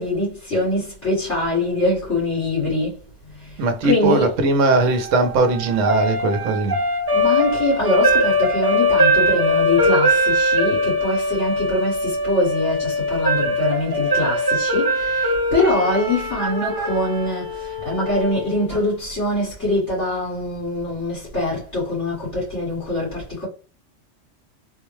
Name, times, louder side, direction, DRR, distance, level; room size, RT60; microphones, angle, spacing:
voice 1, 0.0-3.0 3.4-3.5 3.8-4.4 7.1-23.5, left 1 dB, 70° left, 2.2 m, -23 dB
voice 2, 3.6-6.8, right 2 dB, 80° right, 1.1 m, -19 dB
sound 1, 4.7-18.8, equal, 25° right, 0.6 m, -21 dB
4.0 x 2.2 x 3.1 m
omnidirectional pair, 1.3 m